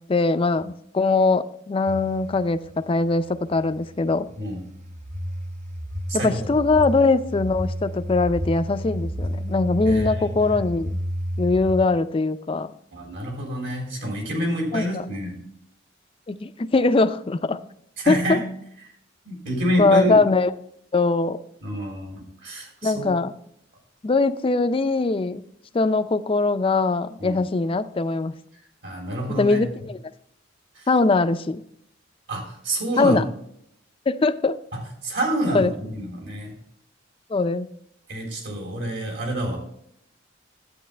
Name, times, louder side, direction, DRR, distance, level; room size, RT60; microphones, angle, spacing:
voice 1, 0.0-2.6 2.9-4.3 6.1-11.0 11.4-12.7 14.7-15.0 16.3-17.6 18.1-18.4 19.8-20.5 20.9-21.4 22.8-23.3 24.0-25.4 25.7-28.3 29.4-30.0 30.9-31.6 33.0-33.2 34.1-34.6 35.5-35.7 37.3-37.7, left 3 dB, 30° left, 11 dB, 0.4 m, -21 dB
sound 1, 1.9-11.9, equal, 40° right, 0.7 m, -32 dB
voice 2, 6.1-6.4 9.9-10.6 12.9-15.4 18.0-18.4 19.3-20.2 21.6-23.1 27.2-27.4 28.8-29.6 30.8-30.9 32.3-33.2 35.0-36.5 38.1-39.6, equal, 65° right, 1 dB, 3.6 m, -27 dB
10.5 x 8.6 x 3.3 m, 0.71 s
head